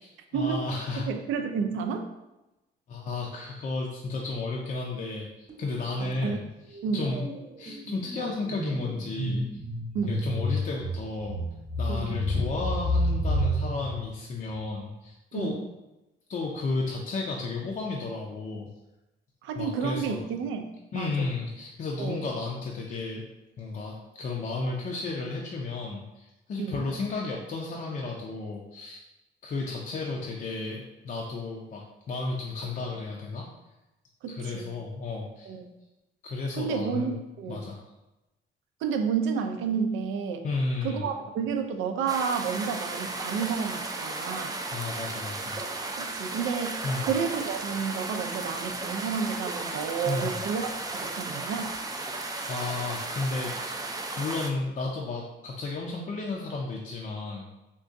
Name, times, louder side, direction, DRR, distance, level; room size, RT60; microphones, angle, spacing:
voice 1, 0.3-1.1 2.9-6.5 6.9-7.3 7.6-9.6 10.1-11.4 11.8-15.6 16.3-18.7 19.6-20.2 20.9-23.3 23.6-29.0 29.4-33.5 34.3-35.5 36.2-37.2 37.5-37.8 40.4-41.1 44.7-45.6 46.8-47.1 50.1-50.4 51.1-51.2 52.5-53.8 54.2-57.5, left 3 dB, 40° left, -1 dB, 0.5 m, -33 dB
voice 2, 1.1-2.1 6.0-6.4 6.8-7.2 9.9-10.3 11.9-12.2 15.3-15.6 19.4-21.3 22.0-22.3 26.6-26.9 34.2-34.7 35.5-35.7 36.5-37.6 38.8-40.4 40.8-44.6 46.0-51.7, right 6 dB, 85° right, 6 dB, 0.4 m, -31 dB
sound 1, 5.5-5.8 6.1-14.9, equal, 45° right, 0.9 m, -31 dB
sound 2, 42.1-54.5, right 2 dB, 20° right, 0.3 m, -35 dB
3.7 x 2.2 x 2.5 m, 0.99 s
cardioid pair, 90°, 20 cm